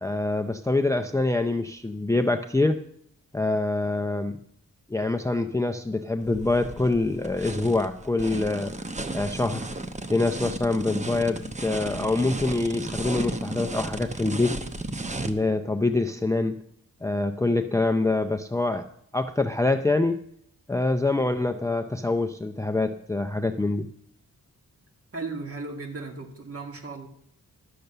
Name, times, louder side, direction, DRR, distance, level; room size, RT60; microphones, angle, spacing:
voice 1, 0.0-2.8 3.3-4.4 4.9-8.7 9.1-9.7 10.1-14.6 15.3-16.6 17.0-18.9 19.1-20.2 20.7-23.9, left 2 dB, 10° left, 8 dB, 0.5 m, -25 dB
sound 1, 6.2-15.3, right 2 dB, 20° right, 0.8 m, -34 dB
voice 2, 25.1-27.1, right 3 dB, 40° right, 3 dB, 2.1 m, -36 dB
12.0 x 6.7 x 6.6 m, 0.69 s
wide cardioid pair, 110°, 36 cm